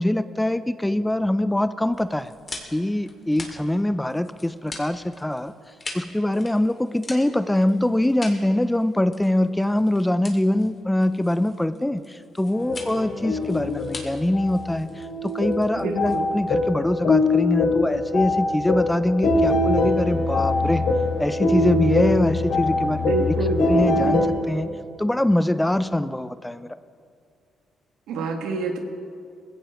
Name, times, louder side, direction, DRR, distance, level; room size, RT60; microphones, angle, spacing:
voice 1, 0.0-2.3 2.7-5.5 5.9-20.9 21.2-23.4 23.7-24.7 25.0-26.7, left 1 dB, 10° left, 13 dB, 0.5 m, -23 dB
sound 1, 1.9-16.6, left 3 dB, 35° left, 2.5 m, -42 dB
sound 2, 12.5-24.3, left 2 dB, 85° left, 2.8 m, -23 dB
voice 2, 15.8-16.2 23.1-23.7 28.1-28.8, right 3 dB, 90° right, 3 dB, 1.6 m, -27 dB
20.0 x 16.5 x 3.1 m, 2.4 s
cardioid pair, 90°, 0 cm